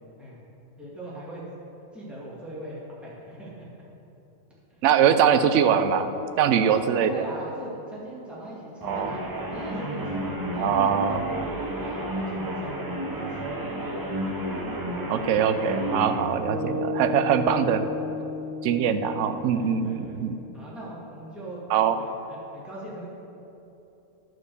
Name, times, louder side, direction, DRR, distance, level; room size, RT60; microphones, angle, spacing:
voice 1, 0.8-1.4 1.9-3.6 6.5-9.2 9.5-10.3 10.5-13.7 16.7-17.1 18.1-18.8 19.5-20.2 20.5-21.6 21.9-23.1, right 1 dB, ahead, -8 dB, 2.0 m, -40 dB
voice 2, 4.8-6.1 6.4-7.2 8.8-9.1 10.6-11.2 15.1-17.9 18.6-20.4 21.7-22.0, right 8 dB, 65° right, 10 dB, 0.8 m, -22 dB
sound 1, 8.8-16.2, right 1 dB, 20° right, 0.6 m, -31 dB
sound 2, 16.5-20.7, left 3 dB, 40° left, 1.3 m, -33 dB
11.5 x 4.6 x 6.7 m, 2.9 s
omnidirectional pair, 1.5 m